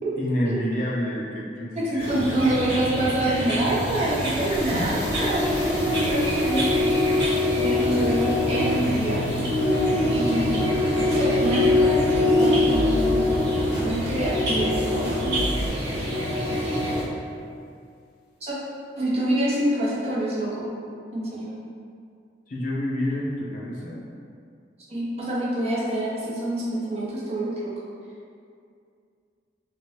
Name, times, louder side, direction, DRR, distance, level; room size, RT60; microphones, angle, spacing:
voice 1, 0.2-2.6 3.7-3.9 4.5-5.0 6.0-6.1 10.0-10.3 16.2-17.3 22.5-24.0, equal, 45° left, -6 dB, 0.5 m, -30 dB
voice 2, 1.8-6.9 7.5-9.5 10.1-10.6 11.1-13.2 13.8-15.4 18.4-18.6 19.0-20.7 21.1-21.5 24.9-27.5, right 1 dB, 35° right, -7 dB, 0.7 m, -26 dB
sound 1, 2.0-17.0, left 1 dB, 70° right, 0.8 m, -24 dB
sound 2, 2.8-13.0, left 1 dB, 80° left, 1.4 m, -40 dB
sound 3, 10.4-15.7, equal, ahead, 1.1 m, -33 dB
2.9 x 2.5 x 3.1 m, 2.3 s
head